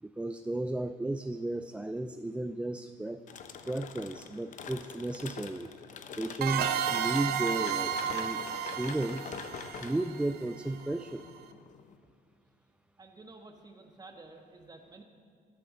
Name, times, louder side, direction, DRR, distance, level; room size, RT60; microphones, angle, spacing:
voice 1, 0.0-3.2 3.7-5.7 6.2-9.3 9.8-11.3, right 2 dB, 5° right, 8 dB, 0.3 m, -34 dB
sound 1, 3.3-11.9, left 6 dB, 50° left, 0.8 m, -45 dB
sound 2, 6.4-10.9, right 8 dB, 70° right, 0.7 m, -33 dB
voice 2, 13.0-15.0, right 3 dB, 25° right, 4 dB, 1.3 m, -51 dB
13.5 x 12.0 x 3.9 m, 2.3 s
cardioid pair, 110°, 17 cm